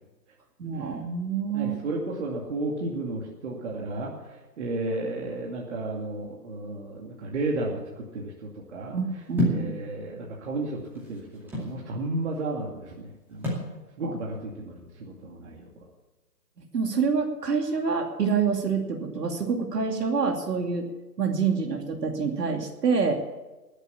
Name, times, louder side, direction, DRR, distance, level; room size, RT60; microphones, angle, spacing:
voice 1, 0.6-1.8 8.9-9.8 14.0-14.1 16.7-20.9 21.2-23.2, right 5 dB, 70° right, 2 dB, 2.8 m, -27 dB
voice 2, 1.5-8.9 9.4-13.5 14.0-15.7, right 2 dB, 45° right, -2 dB, 2.5 m, -33 dB
sound 1, 9.4-9.7 10.6-11.8 13.4-13.7, equal, 5° right, 2.4 m, -28 dB
20.0 x 8.1 x 7.2 m, 1.1 s
hypercardioid pair, 155°, 49 cm